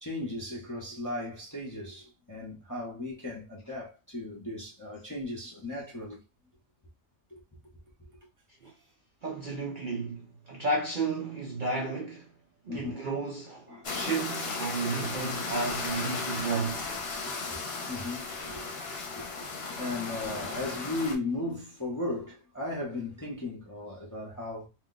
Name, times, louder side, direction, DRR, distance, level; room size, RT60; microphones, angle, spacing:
voice 1, 0.0-6.2 7.3-7.4 12.7-13.1 13.7-14.0 15.1-15.2 17.5-18.6 19.1-19.5 19.7-24.7, left 2 dB, 20° left, 0.6 m, -36 dB
voice 2, 9.2-12.3 12.6-16.9, right 3 dB, 50° right, 0.6 m, -33 dB
sound 1, 13.8-21.1, left 3 dB, 55° left, 0.9 m, -35 dB
2.4 x 2.3 x 3.8 m
omnidirectional pair, 1.4 m